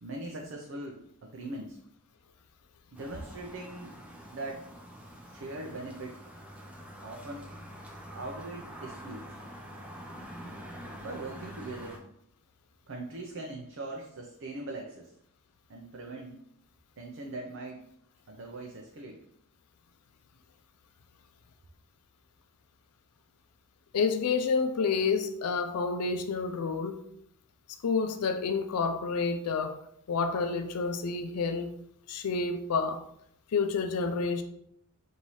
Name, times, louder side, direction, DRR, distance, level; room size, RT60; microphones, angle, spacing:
voice 1, 0.0-1.8 2.9-3.9 4.3-4.6 5.2-6.2 7.0-7.6 8.1-9.4 11.0-12.0 12.9-15.1 15.7-16.4 17.0-17.8 18.3-19.2, right 2 dB, 60° right, 0.6 m, -41 dB
sound 1, 2.9-12.0, equal, 5° right, 0.6 m, -46 dB
voice 2, 23.9-27.0 27.8-29.8 30.1-31.7 32.1-33.0 33.5-34.4, left 5 dB, 85° left, 0.5 m, -29 dB
5.4 x 2.7 x 3.1 m
head